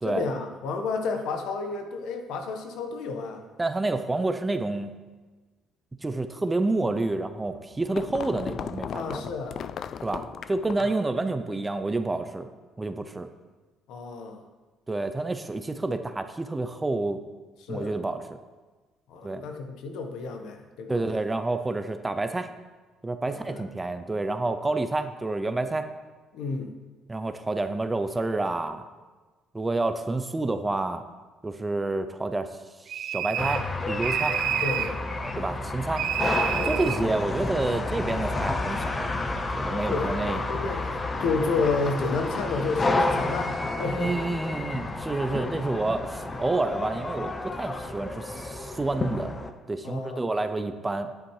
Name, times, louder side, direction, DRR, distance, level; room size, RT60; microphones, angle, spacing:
voice 1, 0.0-3.4 8.9-9.6 10.8-11.0 13.9-14.4 17.6-17.9 19.1-21.2 23.3-23.7 26.3-26.7 34.6-35.0 36.5-36.8 39.9-40.9 41.2-44.1 49.8-50.3, left 4 dB, 75° left, 5 dB, 1.3 m, -31 dB
voice 2, 3.6-4.9 6.0-9.3 10.0-12.5 12.8-13.3 14.9-17.2 17.7-18.4 19.2-19.4 20.9-22.5 23.0-25.9 27.1-28.8 29.5-31.0 31.4-32.5 32.9-34.4 35.4-36.1 36.5-40.4 43.9-49.3 49.7-51.1, right 2 dB, 15° right, 9 dB, 0.6 m, -29 dB
sound 1, 7.3-11.1, left 8 dB, 50° left, 0.3 m, -37 dB
sound 2, 32.9-33.7 34.0-35.0 36.0-37.0, right 11 dB, 65° right, 0.4 m, -29 dB
sound 3, 33.4-49.5, left 2 dB, 20° left, 0.7 m, -30 dB
10.0 x 9.0 x 4.8 m, 1.3 s
cardioid pair, 135°, 0 cm